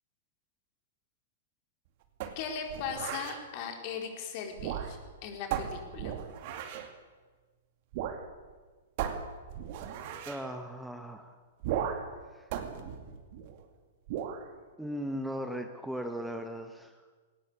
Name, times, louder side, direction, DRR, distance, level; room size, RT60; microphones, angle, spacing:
sound 1, 2.2-3.4 4.5-5.1 5.5-6.9 7.9-8.2 8.5-8.6 9.0-10.4 11.6-12.2 12.5-13.6 14.1-14.4, right 9 dB, 45° right, 2.5 m, -36 dB
voice 1, 2.4-6.1, left 6 dB, 40° left, 3 dB, 4.4 m, -38 dB
voice 2, 10.3-11.3 12.3-12.5 14.8-16.9, equal, ahead, 6 dB, 1.4 m, -37 dB
20.5 x 18.0 x 8.5 m, 1.4 s
figure-of-eight pair, 105°, 0 cm